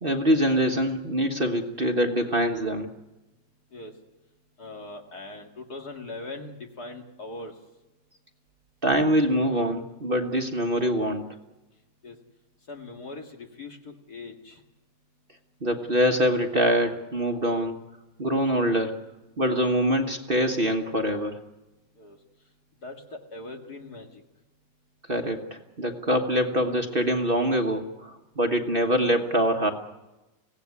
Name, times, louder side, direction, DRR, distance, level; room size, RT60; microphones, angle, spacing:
voice 1, 0.0-2.9 8.8-11.3 15.6-17.7 18.2-19.0 19.4-21.4 25.1-29.7, equal, 35° right, 3 dB, 1.5 m, -24 dB
voice 2, 4.6-7.5 12.0-12.2 12.7-14.6 22.0-22.2 22.8-24.1, left 2 dB, 60° left, 2 dB, 2.6 m, -40 dB
24.5 x 17.0 x 9.7 m, 1.1 s
omnidirectional pair, 1.9 m